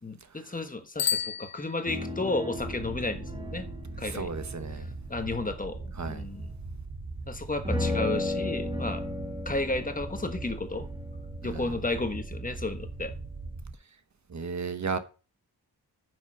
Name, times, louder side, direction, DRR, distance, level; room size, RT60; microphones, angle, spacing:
voice 1, 0.0-3.7 4.0-4.3 5.1-6.5 7.3-9.0 9.4-10.9 11.4-13.1, left 2 dB, 20° left, 1.3 m, -33 dB
Bicycle bell, 0.9-2.3, left 8 dB, 60° left, 0.5 m, -32 dB
sound 1, 1.9-5.9 7.6-12.4 12.7-12.8, left 2 dB, 15° right, 1.7 m, -36 dB
sound 2, 2.6-13.7, right 3 dB, 60° right, 1.9 m, -40 dB
voice 2, 4.1-4.9 6.0-6.2 11.4-11.7 14.3-15.0, right 5 dB, 45° right, 1.3 m, -34 dB
9.7 x 6.5 x 5.9 m
wide cardioid pair, 145°, 39 cm